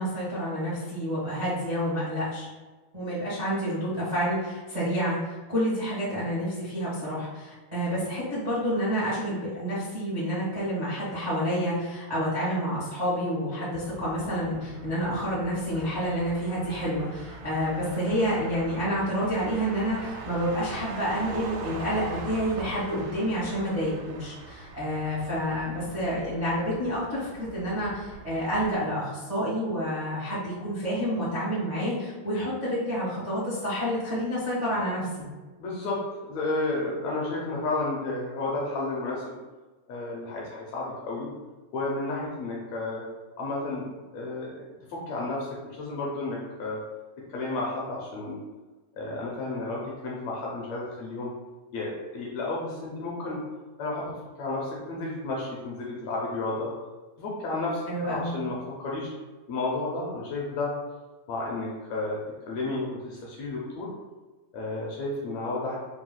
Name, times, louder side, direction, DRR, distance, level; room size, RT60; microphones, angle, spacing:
voice 1, 0.0-2.5 2.9-35.2 57.9-58.3, equal, 55° right, -11 dB, 0.4 m, -29 dB
Motor vehicle (road), 13.7-28.7, right 2 dB, 85° right, 2.1 m, -42 dB
voice 2, 35.6-36.0 36.3-39.4 39.9-41.3 41.7-43.1 43.4-43.8 44.1-44.6 44.9-46.8 47.2-48.4 48.9-51.3 51.7-53.4 53.8-56.7 57.2-59.1 59.5-60.7 61.3-62.2 62.5-63.9 64.5-65.8, left 2 dB, 75° left, -3 dB, 1.7 m, -32 dB
4.9 x 2.2 x 3.8 m, 1.2 s
omnidirectional pair, 3.6 m